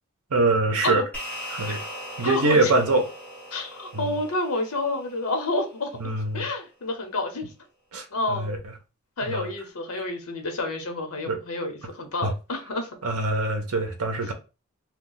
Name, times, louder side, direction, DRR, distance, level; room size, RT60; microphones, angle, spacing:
voice 1, 0.3-1.0 1.5-1.8 2.2-3.1 3.9-4.0 6.0-6.5 7.9-8.6 9.2-9.5 11.3-11.4 12.2-12.3 13.0-14.3, right 2 dB, 85° right, 0.7 m, -24 dB
sound 1, 1.1-5.8, equal, 5° left, 0.8 m, -39 dB
voice 2, 2.2-2.7 3.5-5.9 6.3-7.4 8.1-8.5 9.2-12.9, left 2 dB, 80° left, 0.9 m, -29 dB
2.3 x 2.3 x 3.8 m
head